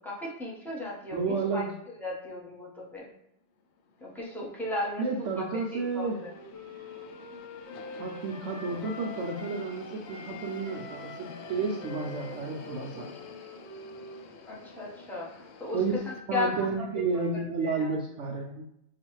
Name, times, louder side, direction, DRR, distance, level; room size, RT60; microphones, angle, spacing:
voice 1, 0.0-1.6 2.0-3.1 4.0-6.3 14.4-16.8 17.1-17.2 17.6-17.9, left 2 dB, ahead, -6 dB, 0.7 m, -36 dB
voice 2, 1.1-1.7 5.0-6.2 8.0-13.1 15.7-16.0 16.3-18.6, right 4 dB, 70° right, 0 dB, 0.7 m, -31 dB
sound 1, 3.6-16.2, left 4 dB, 90° left, 0.5 m, -48 dB
Wind instrument woodwind instrument, 5.3-9.7 10.0-14.6, left 2 dB, 50° left, 1.0 m, -45 dB
6.6 x 2.4 x 3.0 m, 0.80 s
omnidirectional pair, 1.7 m